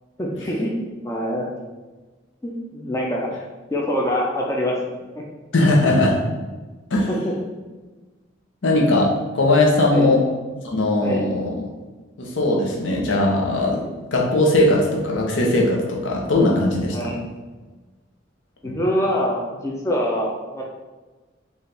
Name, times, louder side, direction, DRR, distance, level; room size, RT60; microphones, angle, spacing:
voice 1, 0.2-0.7 1.0-1.5 2.4-3.3 3.7-5.3 7.1-7.3 9.9-10.2 11.0-11.2 16.9-17.2 18.6-20.6, equal, 15° left, -2 dB, 0.4 m, -25 dB
voice 2, 5.5-6.2 6.9-7.1 8.6-10.2 10.6-11.7 12.2-17.1 18.6-18.8, left 2 dB, 80° left, -1 dB, 0.8 m, -19 dB
4.1 x 2.4 x 3.3 m, 1.3 s
head